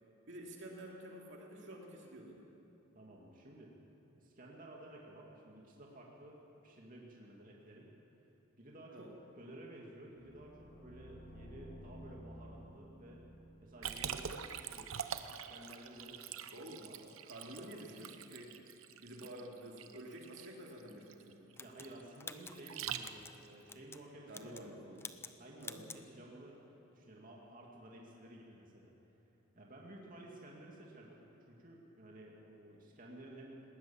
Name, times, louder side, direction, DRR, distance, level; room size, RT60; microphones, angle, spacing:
voice 1, 0.3-2.5 8.9-9.1 16.5-16.8 17.2-18.6 19.0-21.5 24.3-25.1 25.6-25.9, right 1 dB, 60° right, -1 dB, 2.6 m, -50 dB
voice 2, 2.9-3.7 4.2-7.9 8.6-9.1 9.4-13.2 13.6-15.0 15.3-17.0 17.5-17.8 21.6-24.8 25.4-26.6 26.9-28.9 29.6-33.6, right 1 dB, 40° right, -2 dB, 2.4 m, -54 dB
sound 1, 10.1-15.1, equal, 40° left, 1.9 m, -54 dB
Liquid, 13.8-23.5, right 8 dB, 75° right, 0.8 m, -45 dB
sound 2, 21.6-23.3 23.7-24.0 24.3-24.7 25.0-25.3 25.6-26.0, left 4 dB, 10° left, 0.6 m, -49 dB
19.5 x 19.0 x 7.3 m, 3.0 s
head